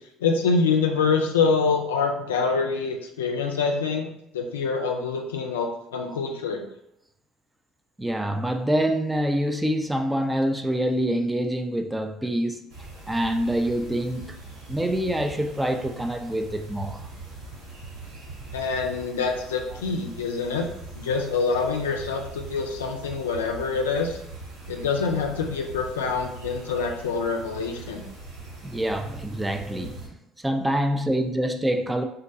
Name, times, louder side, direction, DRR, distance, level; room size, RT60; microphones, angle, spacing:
voice 1, 0.2-4.1 4.3-6.7 18.5-20.7 21.0-24.2 24.7-28.0, left 4 dB, 85° left, 0.3 m, -25 dB
voice 2, 8.0-12.7 13.1-14.4 14.7-17.0 28.6-30.2 30.4-32.0, right 1 dB, 10° right, 0.4 m, -26 dB
sound 1, 12.7-30.1, right 2 dB, 75° right, 1.0 m, -42 dB
3.7 x 2.1 x 2.6 m
hypercardioid pair, 60°, 0 cm